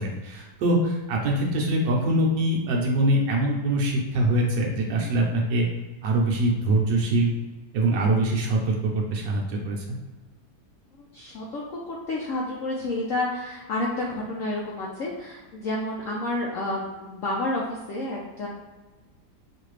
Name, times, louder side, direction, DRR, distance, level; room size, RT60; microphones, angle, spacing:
voice 1, 0.0-5.7 6.0-7.3 7.7-10.0, right 1 dB, 80° right, -1 dB, 1.4 m, -23 dB
voice 2, 11.0-18.5, left 2 dB, 65° left, -4 dB, 0.8 m, -30 dB
5.4 x 2.5 x 3.2 m, 1.2 s
omnidirectional pair, 1.9 m